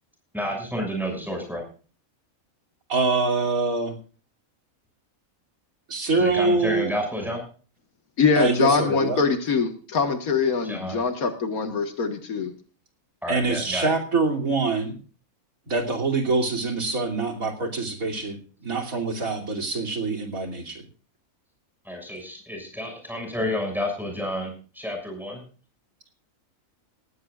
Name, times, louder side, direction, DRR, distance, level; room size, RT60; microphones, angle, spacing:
voice 1, 0.3-1.6 6.2-7.4 10.6-11.0 13.2-13.9 21.8-25.4, left 1 dB, ahead, 2 dB, 6.5 m, -30 dB
voice 2, 2.9-3.9 5.9-6.9 8.4-9.2 13.3-15.0 15.7-20.8, right 3 dB, 75° right, 3 dB, 3.4 m, -25 dB
voice 3, 8.2-12.5, left 5 dB, 85° left, 7 dB, 2.0 m, -23 dB
18.5 x 16.0 x 2.5 m, 0.39 s
omnidirectional pair, 1.5 m